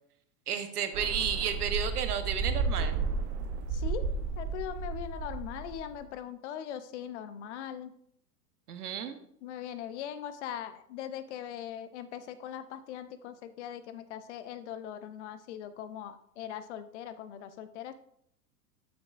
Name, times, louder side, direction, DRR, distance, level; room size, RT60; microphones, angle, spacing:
voice 1, 0.5-3.0 8.7-9.2, right 8 dB, 70° right, 9 dB, 1.1 m, -32 dB
sound 1, 0.9-6.0, right 4 dB, 40° right, 0.9 m, -33 dB
voice 2, 3.7-7.9 9.4-17.9, left 10 dB, 45° left, 12 dB, 0.7 m, -40 dB
12.5 x 6.0 x 2.5 m, 0.70 s
figure-of-eight pair, 100°, 48 cm